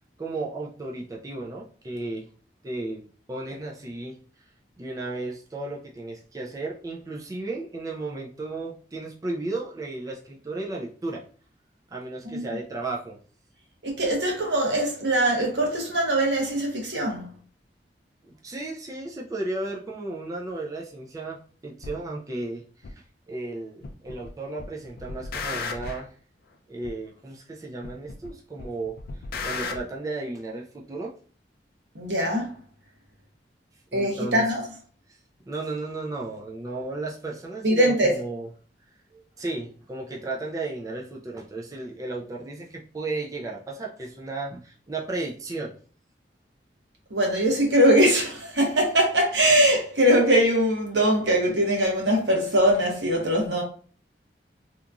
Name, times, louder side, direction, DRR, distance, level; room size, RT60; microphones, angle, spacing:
voice 1, 0.2-2.3 2.6-3.0 3.3-4.2 4.8-11.2 11.9-13.2 18.2-26.2 26.7-29.0 29.4-31.2 33.9-34.5 35.5-38.5 39.1-45.8, right 2 dB, 20° right, 0.3 m, -34 dB
voice 2, 13.8-17.3 31.9-32.6 33.9-34.6 37.6-38.2 47.1-53.6, right 1 dB, 90° right, 1.0 m, -22 dB
sound 1, 21.8-22.0 22.8-22.9 23.8-24.3 24.6-26.1 26.8-26.9 27.8-28.3 28.6-29.8, left 4 dB, 55° left, 0.4 m, -34 dB
2.9 x 2.5 x 2.3 m
head